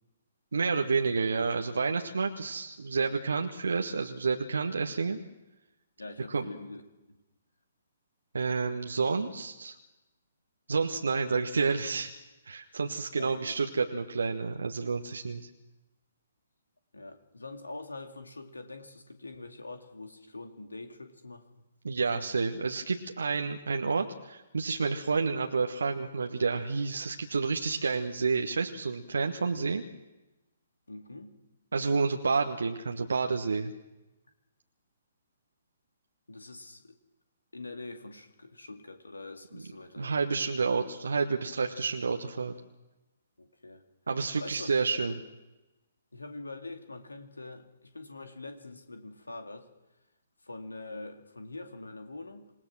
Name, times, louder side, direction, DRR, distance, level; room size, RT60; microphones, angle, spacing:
voice 1, 0.5-5.2 6.3-6.4 8.3-9.8 10.7-12.1 12.4-15.5 21.8-29.8 31.7-33.7 40.0-42.5 44.1-45.2, right 4 dB, 65° right, 3 dB, 1.3 m, -29 dB
voice 2, 6.0-6.8 7.1-7.2 13.2-13.6 16.9-21.5 30.9-31.4 36.3-37.0 37.5-40.1 43.4-43.8 44.4-44.7 45.1-45.2 46.1-49.7 50.4-52.5, left 2 dB, 75° left, 6 dB, 2.3 m, -44 dB
27.0 x 18.5 x 6.2 m, 1.0 s
figure-of-eight pair, 125°, 0 cm